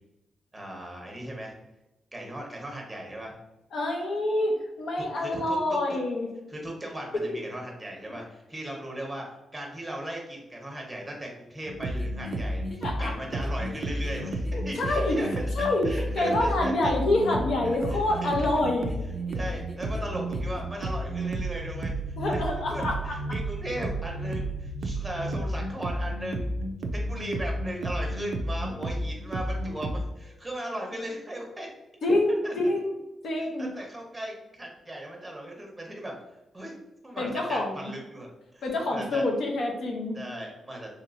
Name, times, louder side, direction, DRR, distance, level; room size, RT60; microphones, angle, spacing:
voice 1, 0.5-1.5 2.1-3.3 5.2-5.8 6.5-9.3 9.5-15.3 15.6-16.9 17.9-18.5 19.3-22.4 22.7-26.6 26.9-31.7 32.4-32.5 33.4-36.1 36.5-36.8 37.0-39.2 40.1-41.0, right 1 dB, 10° right, 0 dB, 0.8 m, -37 dB
voice 2, 3.7-6.3 7.1-7.2 12.8-13.1 14.5-15.2 15.6-15.9 16.2-18.9 22.2-23.1 32.0-32.9 33.2-33.7 37.2-37.9 38.6-40.2, left 2 dB, 70° left, 0 dB, 0.7 m, -27 dB
sound 1, 11.7-30.0, right 1 dB, 70° right, 0.3 m, -32 dB
sound 2, 11.9-20.6, left 1 dB, 25° left, 0.5 m, -47 dB
3.2 x 2.9 x 2.4 m, 0.95 s
cardioid pair, 125°, 0 cm